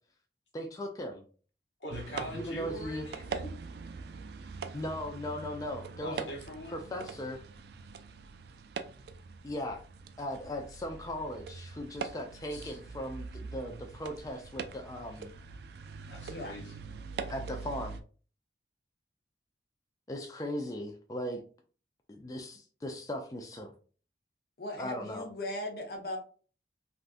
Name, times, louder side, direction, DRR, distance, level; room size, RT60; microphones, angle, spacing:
voice 1, 0.5-1.2 2.3-3.1 4.7-6.2 6.7-7.4 9.4-9.8 10.2-15.3 17.3-18.0 20.1-21.4 22.1-23.7 24.8-25.3, equal, 20° left, 3 dB, 0.3 m, -38 dB
voice 2, 1.8-3.5 6.0-6.8 12.5-12.8 16.1-16.8, left 1 dB, 90° left, 0 dB, 1.1 m, -42 dB
sound 1, 1.9-18.0, right 5 dB, 65° right, 0.3 m, -43 dB
voice 3, 24.6-26.2, left 1 dB, 55° left, 2 dB, 0.7 m, -38 dB
3.4 x 2.5 x 2.5 m, 0.39 s
head